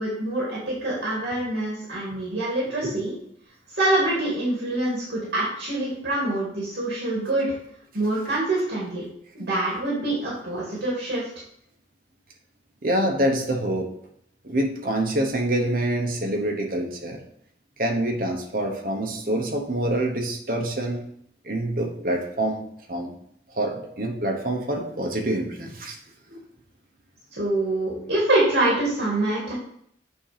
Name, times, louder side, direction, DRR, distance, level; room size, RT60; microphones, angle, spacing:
voice 1, 0.0-3.1 3.7-7.5 7.9-9.0 9.3-11.3 27.3-29.5, right 1 dB, 75° right, -5 dB, 2.0 m, -25 dB
voice 2, 12.8-13.9 14.4-17.2 17.8-21.1 21.4-23.1 23.5-26.0 26.3-26.4, right 1 dB, 50° right, 2 dB, 1.1 m, -26 dB
8.3 x 2.9 x 5.0 m, 0.69 s
head